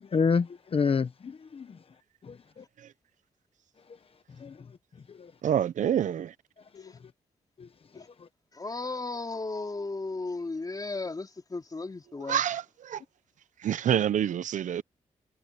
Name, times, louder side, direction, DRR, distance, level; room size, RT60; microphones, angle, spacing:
voice 1, 0.1-2.0 2.2-2.6 3.8-4.0 4.3-5.3 6.6-7.1 7.6-8.3, left 5 dB, 45° left, 1.1 m, -31 dB
voice 2, 5.4-6.3 12.3-13.0 13.6-14.8, right 10 dB, 80° right, 0.7 m, -27 dB
voice 3, 8.5-12.4, left 3 dB, 30° left, 3.8 m, -35 dB
cardioid pair, 80°, 13 cm